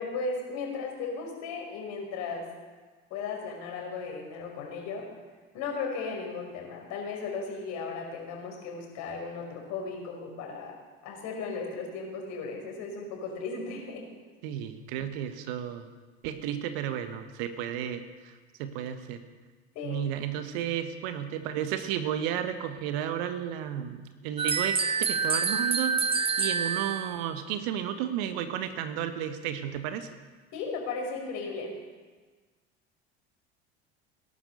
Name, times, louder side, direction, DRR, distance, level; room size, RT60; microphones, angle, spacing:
voice 1, 0.0-2.4 3.1-5.1 5.5-10.7 11.0-14.0 19.7-20.1 30.5-31.7, left 4 dB, 55° left, 0 dB, 5.4 m, -36 dB
voice 2, 14.4-15.9 16.2-18.3 18.6-19.2 19.8-25.9 26.4-30.1, right 10 dB, 60° right, 9 dB, 1.5 m, -33 dB
sound 1, 24.4-27.2, right 5 dB, 15° right, 0.9 m, -27 dB
18.5 x 11.0 x 6.9 m, 1.4 s
figure-of-eight pair, 70°, 33 cm